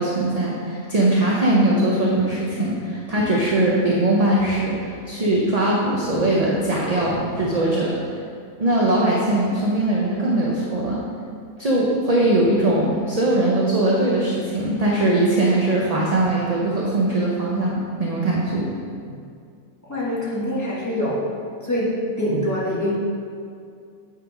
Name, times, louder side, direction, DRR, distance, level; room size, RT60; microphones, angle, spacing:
voice 1, 0.0-7.9 8.6-11.0 11.6-18.7, right 1 dB, 35° right, -4 dB, 0.7 m, -21 dB
voice 2, 19.9-21.2 21.6-21.9 22.2-22.9, equal, 10° left, -7 dB, 1.8 m, -24 dB
8.5 x 4.8 x 5.1 m, 2.3 s
omnidirectional pair, 1.7 m